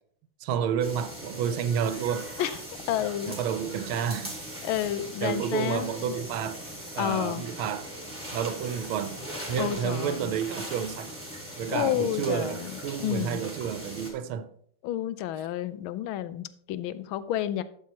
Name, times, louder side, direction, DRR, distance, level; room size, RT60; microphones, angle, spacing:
voice 1, 0.4-2.3 3.3-4.4 5.2-6.6 6.9-7.9 8.3-9.2 9.5-11.1 11.6-14.5, right 8 dB, 85° right, 1.5 m, -30 dB
sound 1, 0.8-14.1, right 1 dB, 5° right, 2.8 m, -40 dB
voice 2, 2.9-3.4 4.6-6.2 7.0-7.4 9.6-10.3 11.7-12.7 13.0-13.4 14.8-17.6, left 12 dB, 80° left, 1.4 m, -30 dB
11.5 x 7.5 x 2.9 m
omnidirectional pair, 2.3 m